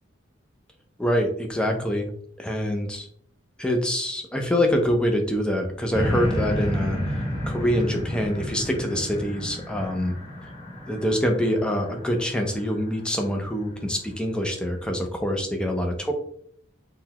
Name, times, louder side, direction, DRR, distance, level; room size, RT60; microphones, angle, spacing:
voice 1, 1.0-2.1 2.4-3.1 3.6-7.2 7.5-10.2 10.9-16.1, equal, 5° left, 3 dB, 0.4 m, -25 dB
sound 1, 5.9-13.3 13.9-14.0, equal, 35° left, 0.9 m, -31 dB
3.7 x 2.2 x 2.9 m, 0.63 s
head